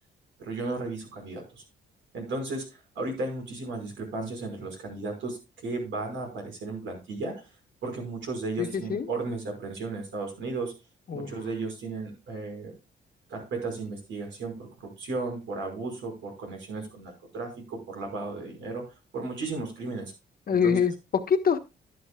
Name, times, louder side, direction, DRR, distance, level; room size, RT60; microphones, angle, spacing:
voice 1, 0.4-1.6 2.1-2.6 3.0-5.4 5.6-7.3 7.8-10.7 11.1-12.7 13.3-18.8 19.1-20.1 20.6-20.8, right 3 dB, 85° right, 5.5 m, -34 dB
voice 2, 8.6-9.1 11.1-11.3 20.5-21.6, left 6 dB, 50° left, 1.3 m, -25 dB
12.5 x 11.5 x 2.3 m
cardioid pair, 80°, 19 cm